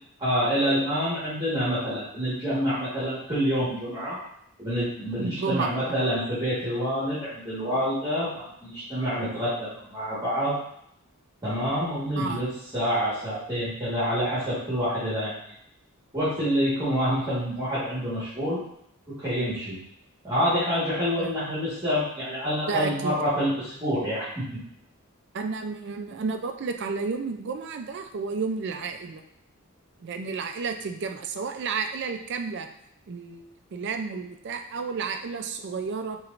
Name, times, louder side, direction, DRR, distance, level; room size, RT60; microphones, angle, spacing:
voice 1, 0.2-4.2 4.6-10.6 11.4-15.3 16.1-18.6 19.1-19.7 20.2-24.6, equal, 20° right, -11 dB, 1.4 m, -27 dB
voice 2, 5.2-6.0 12.2-12.4 21.2-21.3 22.7-23.2 25.3-29.2 30.0-32.7 33.1-36.2, right 4 dB, 50° right, 6 dB, 0.4 m, -31 dB
4.5 x 3.0 x 2.5 m, 0.73 s
head